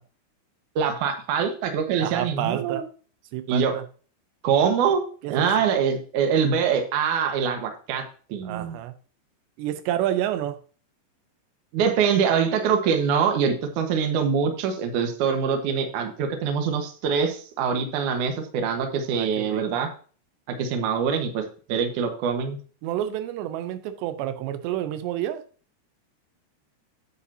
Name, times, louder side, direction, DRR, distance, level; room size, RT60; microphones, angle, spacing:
voice 1, 0.8-2.8 3.5-3.7 4.4-5.0 5.3-8.0 8.3-8.8 11.7-19.9 20.6-22.6, right 6 dB, 60° right, 2.3 m, -24 dB
voice 2, 2.0-2.8 3.3-3.8 5.2-5.5 8.4-8.9 9.6-10.6 19.1-19.6 22.8-25.4, right 12 dB, 85° right, 3.0 m, -29 dB
9.7 x 8.2 x 2.8 m
omnidirectional pair, 4.9 m